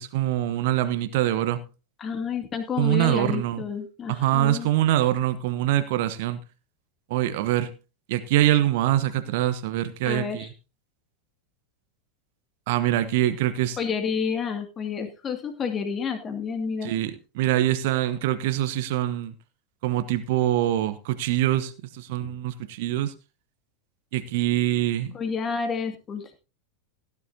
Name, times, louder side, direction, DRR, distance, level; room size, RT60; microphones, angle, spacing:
voice 1, 0.0-1.6 2.8-3.6 4.1-6.4 7.1-7.7 8.1-10.5 12.7-13.8 16.8-19.3 19.8-23.1 24.1-25.2, right 13 dB, 50° right, 1.0 m, -24 dB
voice 2, 2.0-4.7 10.0-10.5 13.8-16.9 22.2-22.3 25.1-26.4, left 6 dB, 25° left, 2.4 m, -30 dB
17.0 x 10.5 x 2.8 m
figure-of-eight pair, 90°, 0 cm